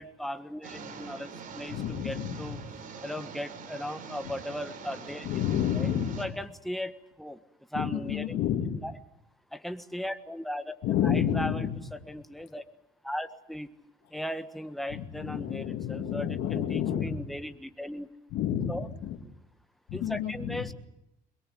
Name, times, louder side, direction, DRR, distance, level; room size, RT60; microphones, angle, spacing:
voice 1, 0.0-2.6 3.0-5.3 5.6-5.9 6.2-6.9 7.2-7.4 7.7-8.4 8.8-8.9 9.5-10.8 11.0-12.6 13.0-13.7 14.1-18.1 18.7-18.9 19.9-20.7, equal, ahead, 8 dB, 1.5 m, -37 dB
sound 1, 0.6-6.3, right 5 dB, 55° right, 3.9 m, -44 dB
voice 2, 1.7-2.6 5.2-6.3 7.7-8.8 10.8-11.7 14.9-17.2 18.3-19.2 19.9-20.6, left 9 dB, 80° left, 4 dB, 2.5 m, -30 dB
22.5 x 22.0 x 8.0 m, 0.85 s
cardioid pair, 110°, 17 cm